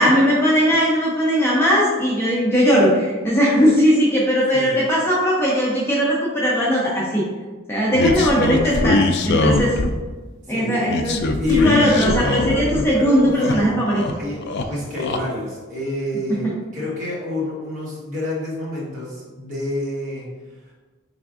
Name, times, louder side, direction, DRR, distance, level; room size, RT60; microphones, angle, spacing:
voice 1, 0.0-7.3 7.7-9.0 9.3-9.8 10.5-11.2 11.5-14.0, equal, 10° left, -6 dB, 0.6 m, -18 dB
sound 1, 7.9-10.1 10.9-12.9 13.2-14.1 14.4-15.2, left 2 dB, 55° left, 0.3 m, -21 dB
voice 2, 11.4-12.7 12.9-13.8 14.1-14.4 14.7-20.3, left 2 dB, 40° right, -7 dB, 1.4 m, -28 dB
4.3 x 3.4 x 2.5 m, 1.3 s
head